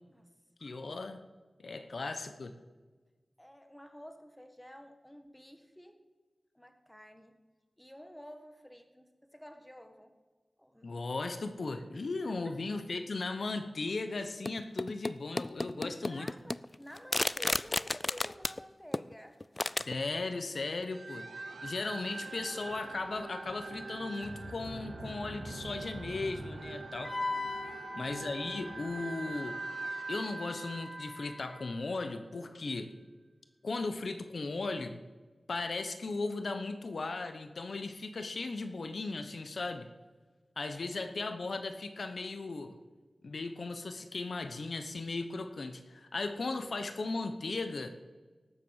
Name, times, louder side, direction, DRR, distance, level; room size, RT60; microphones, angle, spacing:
voice 1, 0.6-1.2 1.6-2.5 10.8-16.3 19.9-21.3 21.6-27.1 27.9-29.6 30.1-32.9 33.6-35.0 35.5-39.9 40.6-42.8 43.2-47.9, left 3 dB, 70° left, 8 dB, 1.0 m, -37 dB
voice 2, 1.7-2.2 3.4-6.0 6.5-7.4 7.8-10.2 10.6-11.0 11.9-12.6 15.7-19.4 27.6-28.0 40.7-41.0, equal, 5° left, 7 dB, 1.5 m, -52 dB
sound 1, 14.5-15.1 15.4-18.6 18.9-19.1 19.4-19.9, left 2 dB, 35° left, 0.4 m, -32 dB
sound 2, 20.9-32.1, right 3 dB, 90° right, 1.7 m, -43 dB
Wind instrument woodwind instrument, 27.0-31.7, left 3 dB, 50° left, 1.3 m, -42 dB
18.0 x 7.5 x 7.4 m, 1.3 s
wide cardioid pair, 60°, 0 cm